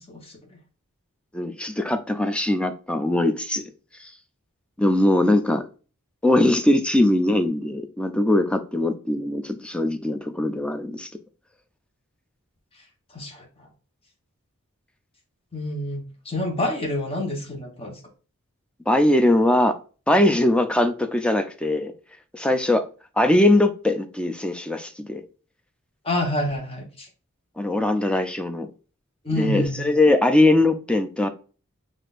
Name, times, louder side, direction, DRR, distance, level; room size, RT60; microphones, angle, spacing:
voice 1, 0.1-0.6 13.1-13.7 15.5-18.0 26.0-27.1 29.2-29.9, left 1 dB, 25° left, 1.1 m, -28 dB
voice 2, 1.3-3.6 4.0-4.1 4.8-5.6 6.2-11.1 18.9-19.8 20.1-21.9 22.3-22.9 23.2-25.2 27.6-28.7 29.4-31.3, left 1 dB, 5° left, 0.4 m, -21 dB
6.1 x 2.5 x 2.4 m
head